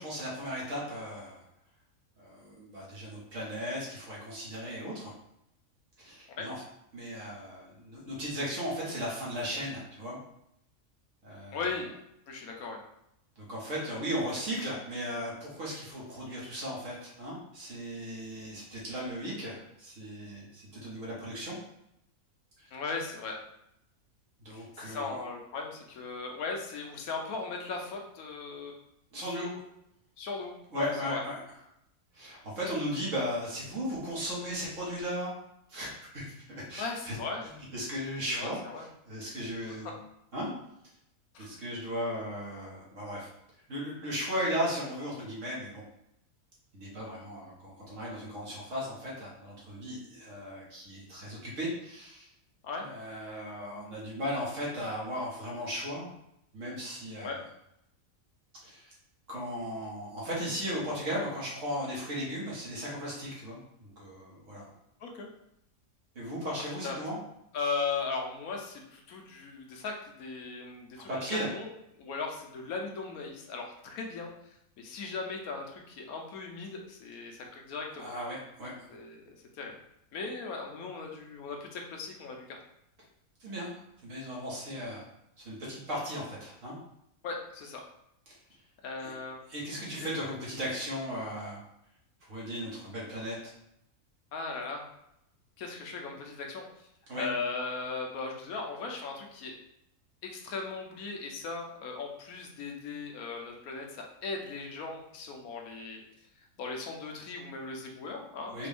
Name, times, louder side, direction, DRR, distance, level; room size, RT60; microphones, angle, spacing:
voice 1, 0.0-1.4 2.2-5.1 6.0-6.6 6.9-10.2 11.2-11.6 13.4-21.6 22.6-22.8 24.4-25.2 29.1-29.6 30.7-31.4 32.1-35.3 35.7-37.2 37.7-40.0 40.3-40.5 41.4-43.3 43.7-45.8 46.7-52.3 52.8-56.1 56.5-57.4 58.6-58.9 59.3-64.7 66.2-67.2 71.1-71.5 78.0-78.7 83.4-83.7 84.0-85.1 85.4-86.8 89.0-89.1 89.5-91.6 92.3-93.5 97.1-97.3 108.5-108.7, equal, 60° right, -5 dB, 1.7 m, -36 dB
voice 2, 11.5-11.9 12.3-12.8 18.9-19.0 22.7-23.4 24.5-28.8 29.2-29.5 30.2-31.2 36.8-37.5 38.3-38.9 39.7-39.9 41.3-41.5 52.6-52.8 57.2-57.4 65.0-65.3 66.8-67.0 67.5-71.7 71.9-74.3 74.8-78.1 78.9-79.7 80.1-82.4 87.2-87.8 88.8-89.4 90.0-90.1 94.3-94.8 95.6-96.9 97.2-99.5 100.2-106.0 106.6-108.7, left 4 dB, 85° left, 2 dB, 1.2 m, -38 dB
4.6 x 2.5 x 3.4 m, 0.79 s
omnidirectional pair, 1.5 m